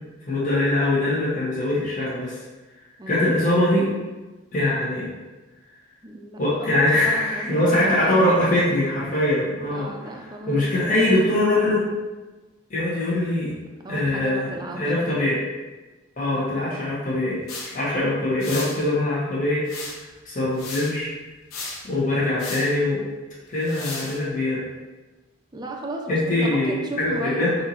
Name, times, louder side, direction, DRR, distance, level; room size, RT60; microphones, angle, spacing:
voice 1, 0.3-2.3 3.1-3.9 4.5-5.1 6.4-9.9 10.5-11.8 12.7-13.5 13.9-15.4 16.2-17.4 17.7-19.6 20.2-21.1 21.8-23.0 23.5-24.6 26.1-27.5, left 1 dB, 40° left, -8 dB, 1.3 m, -22 dB
voice 2, 3.0-3.3 6.0-8.4 9.7-11.1 13.8-15.3 16.3-16.6 25.5-27.6, right 1 dB, 20° right, 1 dB, 0.5 m, -35 dB
sound 1, 17.5-17.7 18.4-18.8 19.7-20.1 20.5-20.9 21.5-21.8 22.4-22.7 23.6-24.2, left 3 dB, 80° left, 0.8 m, -34 dB
5.7 x 2.8 x 2.9 m, 1.2 s
head